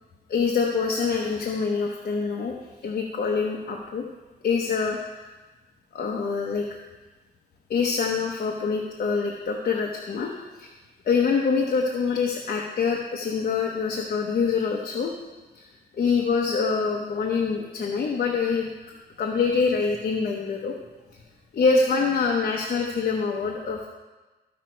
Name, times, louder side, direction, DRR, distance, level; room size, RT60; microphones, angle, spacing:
voice 1, 0.3-2.5 2.8-4.0 4.4-5.3 5.9-6.7 7.7-10.7 11.1-15.1 15.9-18.7 19.2-20.7 21.5-23.9, left 5 dB, 55° left, -1 dB, 1.0 m, -25 dB
14.5 x 5.2 x 4.5 m, 1.2 s
wide cardioid pair, 150°, 18 cm